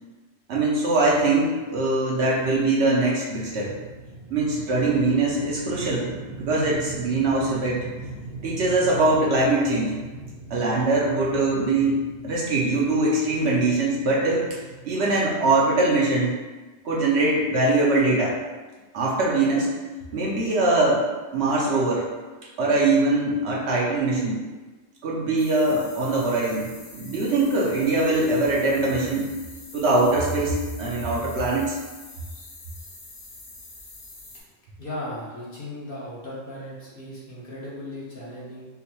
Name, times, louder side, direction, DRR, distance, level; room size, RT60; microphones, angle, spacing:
voice 1, 0.5-3.7 4.3-6.1 6.4-7.8 8.4-9.9 10.5-14.6 14.8-16.3 16.8-18.4 18.9-19.7 20.1-21.0 21.3-22.1 22.6-24.4 25.0-29.3 29.7-31.8, right 2 dB, 65° right, -4 dB, 0.8 m, -22 dB
sound 1, 3.5-15.7, right 2 dB, 50° right, 0.3 m, -40 dB
sound 2, 25.4-34.4, left 2 dB, 70° left, 1.1 m, -45 dB
voice 2, 34.8-38.7, left 1 dB, 50° left, -7 dB, 0.9 m, -36 dB
3.7 x 2.1 x 2.9 m, 1.3 s
omnidirectional pair, 1.4 m